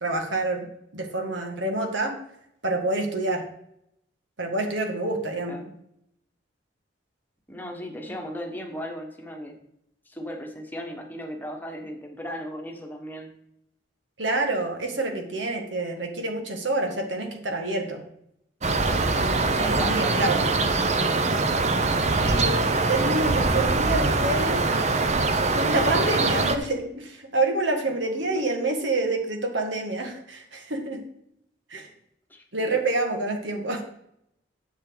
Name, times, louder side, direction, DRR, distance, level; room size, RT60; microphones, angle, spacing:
voice 1, 0.0-0.7 0.9-2.2 2.6-3.4 4.4-5.6 14.2-18.0 18.9-19.2 19.5-20.5 22.2-24.6 25.5-31.0 31.7-31.9 32.5-33.8, right 2 dB, 80° right, 4 dB, 1.8 m, -27 dB
voice 2, 7.5-9.5 10.0-13.3 19.5-21.2 32.3-32.8, equal, 10° left, 2 dB, 1.3 m, -37 dB
sound 1, 18.6-26.6, right 3 dB, 35° right, 0.8 m, -23 dB
9.9 x 7.3 x 4.0 m, 0.75 s
head